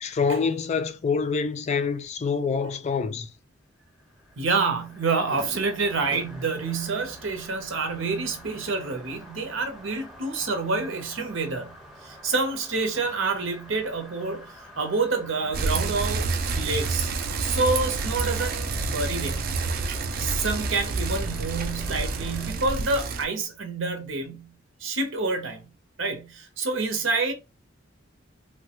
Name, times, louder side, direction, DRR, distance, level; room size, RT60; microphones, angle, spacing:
voice 1, 0.0-3.3, left 5 dB, 35° left, 0.3 m, -26 dB
sound 1, 3.8-22.5, equal, ahead, 0.8 m, -47 dB
voice 2, 4.4-11.8 12.0-16.3 16.5-17.1 17.4-19.6 20.2-24.5 24.8-25.7 26.0-27.3, right 3 dB, 70° right, 0.8 m, -28 dB
Bicycle, 15.5-23.3, right 3 dB, 50° right, 0.4 m, -28 dB
3.2 x 2.2 x 2.9 m
head